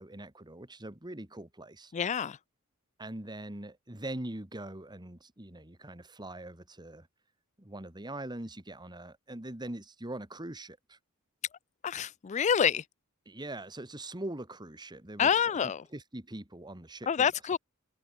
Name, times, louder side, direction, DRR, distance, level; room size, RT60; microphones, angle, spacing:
voice 1, 0.0-1.9 3.0-7.1 7.6-11.0 13.3-17.3, right 1 dB, 20° right, 2.0 m, -42 dB
voice 2, 1.9-2.4 11.8-12.8 15.2-15.8 17.1-17.6, left 7 dB, 30° left, 0.4 m, -27 dB
head